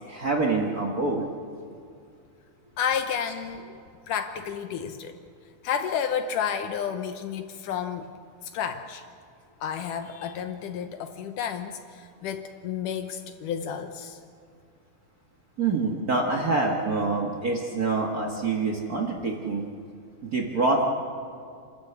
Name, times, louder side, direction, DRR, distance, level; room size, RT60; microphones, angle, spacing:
voice 1, 0.0-1.2 15.6-19.6 20.2-20.8, right 3 dB, 65° right, 1 dB, 0.9 m, -26 dB
voice 2, 2.8-5.2 5.6-8.1 8.4-9.0 9.6-14.2, left 7 dB, 70° left, 8 dB, 2.1 m, -31 dB
28.0 x 13.5 x 8.2 m, 2.4 s
omnidirectional pair, 4.5 m